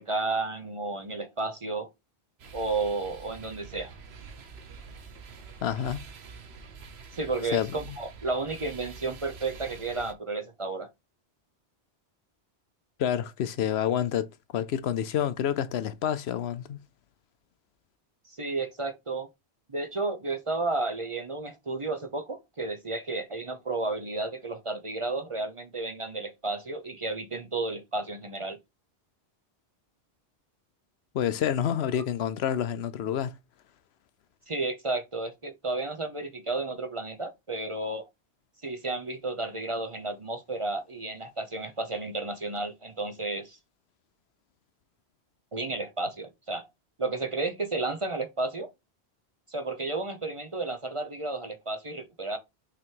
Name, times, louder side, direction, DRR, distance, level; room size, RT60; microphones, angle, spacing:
voice 1, 0.0-1.9 2.5-3.9 7.1-10.9 18.3-19.3 19.7-28.6 34.5-38.1 38.6-43.6 45.5-46.7 47.0-48.7 49.5-52.4, right 3 dB, 35° right, 0.7 m, -32 dB
sound 1, 2.4-10.1, right 5 dB, 70° right, 1.1 m, -46 dB
voice 2, 5.6-6.0 7.5-7.7 13.0-14.3 14.5-16.8 31.1-33.3, left 9 dB, 75° left, 0.8 m, -28 dB
6.0 x 3.4 x 4.5 m
omnidirectional pair, 1.1 m